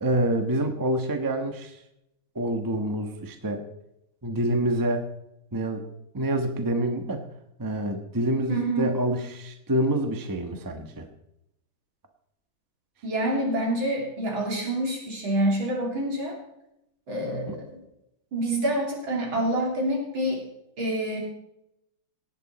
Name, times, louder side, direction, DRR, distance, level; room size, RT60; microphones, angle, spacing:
voice 1, 0.0-1.8 2.3-3.6 4.2-5.1 5.5-5.8 6.1-7.3 7.6-11.1 17.5-17.6, right 1 dB, 15° right, 5 dB, 0.8 m, -27 dB
voice 2, 8.5-8.9 13.0-16.4 17.1-17.6 18.3-20.4 20.8-21.2, right 1 dB, 75° right, -1 dB, 4.0 m, -27 dB
18.0 x 8.8 x 4.2 m, 0.84 s
omnidirectional pair, 2.2 m